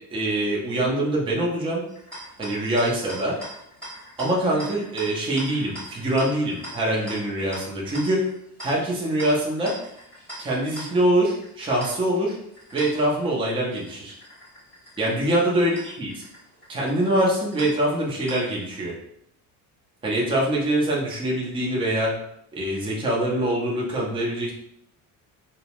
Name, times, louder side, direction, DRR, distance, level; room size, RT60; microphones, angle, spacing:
voice 1, 0.1-1.8 2.4-3.4 4.2-8.2 8.6-9.7 10.4-12.4 12.7-14.1 15.0-16.1 16.7-18.9 20.0-22.1 22.5-24.5, right 1 dB, 15° right, -4 dB, 0.4 m, -24 dB
sound 1, 1.9-18.8, equal, 5° left, 1.0 m, -42 dB
2.6 x 2.0 x 2.9 m, 0.74 s
cardioid pair, 150°, 40 cm